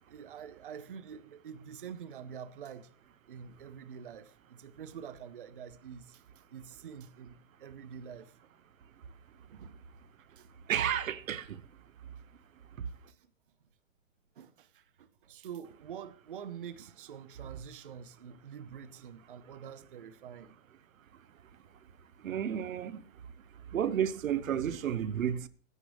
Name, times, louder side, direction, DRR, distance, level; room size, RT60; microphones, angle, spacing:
voice 1, 0.1-2.9 3.3-6.2 6.5-8.3 9.4-9.8 10.3-10.5 13.1-13.3 14.4-20.6, right 8 dB, 45° right, 0.5 m, -46 dB
voice 2, 10.7-11.6 22.2-23.0 23.7-25.5, right 9 dB, 90° right, 0.9 m, -31 dB
15.5 x 9.7 x 3.3 m
hypercardioid pair, 175°, 39 cm